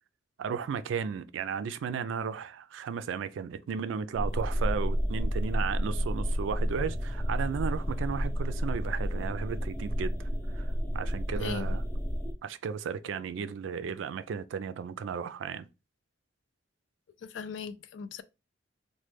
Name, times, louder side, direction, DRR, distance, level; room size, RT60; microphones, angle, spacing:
voice 1, 0.4-10.2 10.5-11.8 12.4-15.7, right 6 dB, 85° right, 0.3 m, -34 dB
sound 1, 4.2-12.3, equal, 15° left, 0.5 m, -31 dB
voice 2, 11.3-11.8 17.2-18.2, left 6 dB, 70° left, 0.3 m, -39 dB
3.1 x 2.1 x 3.2 m
head